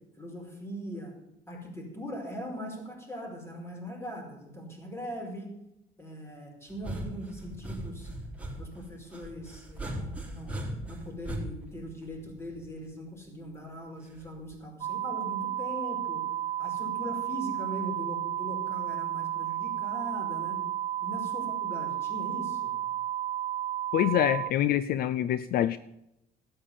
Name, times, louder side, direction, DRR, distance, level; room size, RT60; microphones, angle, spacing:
voice 1, 0.2-1.1 1.5-5.5 6.0-8.1 8.6-10.5 10.9-16.2 16.6-20.6 21.0-22.7, equal, 15° left, 1 dB, 4.9 m, -40 dB
sound 1, 6.7-12.8 14.2-14.5, right 1 dB, 10° right, 3.9 m, -39 dB
sound 2, 14.8-24.5, right 12 dB, 35° right, 0.4 m, -32 dB
voice 2, 23.9-25.8, left 11 dB, 65° left, 15 dB, 0.5 m, -25 dB
12.0 x 9.0 x 7.1 m, 0.85 s
cardioid pair, 110°, 17 cm